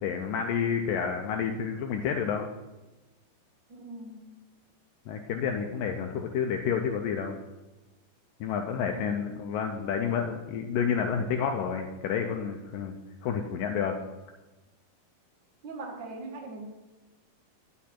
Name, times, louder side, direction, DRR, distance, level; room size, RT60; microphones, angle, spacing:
voice 1, 0.0-2.5 5.1-7.4 8.4-12.9 13.2-14.0, left 7 dB, 85° left, 4 dB, 2.0 m, -29 dB
voice 2, 3.7-4.3 8.9-9.3 15.6-16.7, right 2 dB, 80° right, 0 dB, 1.0 m, -41 dB
9.4 x 8.3 x 4.3 m, 1.1 s
omnidirectional pair, 4.6 m